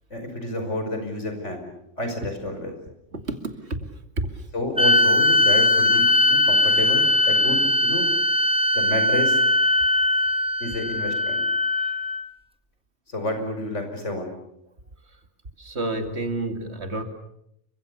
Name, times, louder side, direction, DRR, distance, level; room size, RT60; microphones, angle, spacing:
voice 1, 0.1-1.7 2.0-2.7 4.5-8.1 8.7-9.4 10.6-11.4 11.8-12.0 13.1-14.3, left 1 dB, 80° left, 5 dB, 5.9 m, -29 dB
voice 2, 3.1-3.9 4.2-4.5 15.1-15.2 15.6-17.0, right 2 dB, 65° right, 7 dB, 2.7 m, -30 dB
sound 1, 4.8-12.3, left 2 dB, 5° right, 0.9 m, -20 dB
29.5 x 24.5 x 6.9 m, 0.77 s
omnidirectional pair, 1.2 m